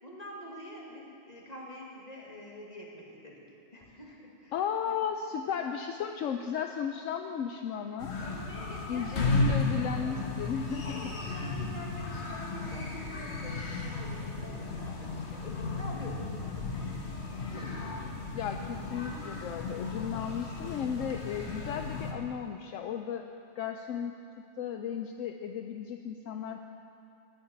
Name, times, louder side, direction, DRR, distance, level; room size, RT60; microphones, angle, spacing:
voice 1, 0.0-3.4 3.7-5.0 8.2-9.6 10.9-17.8, left 1 dB, 30° left, -3 dB, 2.2 m, -46 dB
voice 2, 4.5-8.1 8.9-11.1 18.3-23.2 23.6-24.1 24.6-26.6, left 7 dB, 75° left, 5 dB, 0.9 m, -35 dB
sound 1, 8.0-22.1, left 3 dB, 55° left, 1.5 m, -34 dB
10.5 x 9.8 x 8.8 m, 2.6 s
omnidirectional pair, 1.4 m